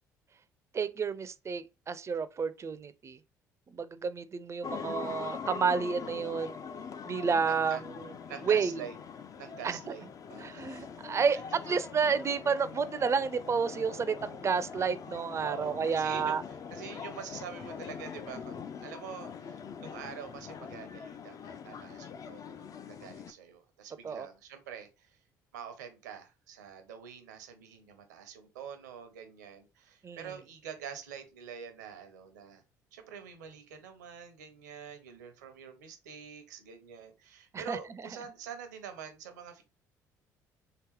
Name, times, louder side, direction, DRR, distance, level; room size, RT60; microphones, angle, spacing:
voice 1, 0.7-3.2 3.7-6.5 7.0-7.8 8.4-8.8 9.6-9.8 10.4-16.4 24.0-24.3 30.0-30.2 37.5-37.8, right 5 dB, 30° right, 0.4 m, -30 dB
sound 1, 4.6-23.3, left 6 dB, 40° left, 0.4 m, -43 dB
voice 2, 7.5-7.8 8.3-9.0 9.4-10.6 11.3-11.4 15.4-16.4 16.7-25.2 25.5-32.6 32.9-39.6, right 7 dB, 80° right, 0.6 m, -46 dB
3.3 x 2.9 x 3.0 m
hypercardioid pair, 55°, 9 cm